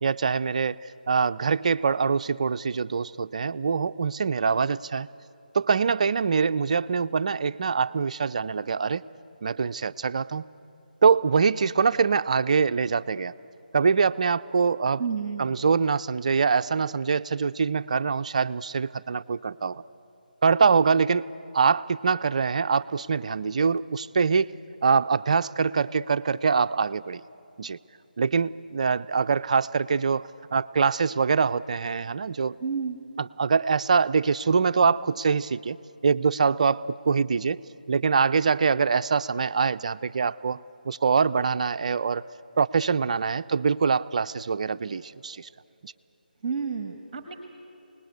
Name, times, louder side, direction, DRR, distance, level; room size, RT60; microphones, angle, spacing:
voice 1, 0.0-0.8 1.1-5.1 5.5-9.1 9.4-10.5 11.0-13.3 13.7-15.0 15.4-19.8 20.4-21.3 21.5-27.2 27.6-27.8 28.2-32.6 33.4-35.8 36.0-37.6 37.9-42.2 42.6-45.5 45.8-45.9, right 5 dB, 45° right, 13 dB, 0.5 m, -24 dB
voice 2, 15.0-15.5 32.6-33.0 46.4-47.4, right 6 dB, 30° right, 6 dB, 1.5 m, -30 dB
27.5 x 19.5 x 8.1 m, 2.8 s
figure-of-eight pair, 160°, 5 cm